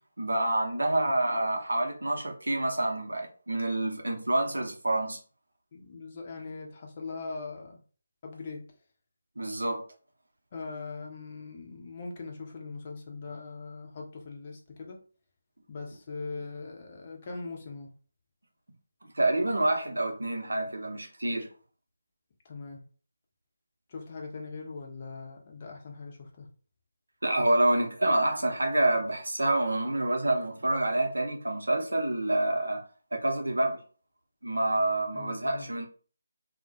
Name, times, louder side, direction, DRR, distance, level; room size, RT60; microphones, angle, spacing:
voice 1, 0.2-5.2 9.4-9.8 19.1-21.5 27.2-32.8 33.1-33.8 34.4-35.9, right 1 dB, 70° right, 0.7 m, -27 dB
voice 2, 5.7-7.8 8.2-8.7 10.5-15.0 15.7-17.9 22.4-22.8 23.9-26.5 35.1-35.7, left 4 dB, 35° left, 0.6 m, -41 dB
2.2 x 2.1 x 2.7 m
figure-of-eight pair, 155°, 0 cm